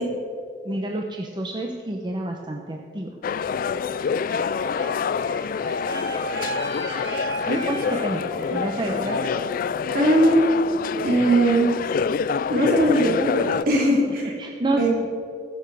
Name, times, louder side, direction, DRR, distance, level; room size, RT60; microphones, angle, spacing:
voice 1, 0.6-3.2 7.4-9.3 13.7-13.8 14.4-14.9, right 1 dB, 25° right, 1 dB, 0.8 m, -28 dB
sound 1, 3.2-13.6, left 6 dB, 50° left, 0.3 m, -26 dB
sound 2, 4.0-10.2, right 1 dB, 80° right, 2.5 m, -34 dB
voice 2, 9.9-10.4 11.0-11.7 12.5-14.2 14.8-14.9, right 1 dB, 55° right, -1 dB, 3.0 m, -19 dB
20.5 x 7.0 x 4.8 m, 2.3 s
head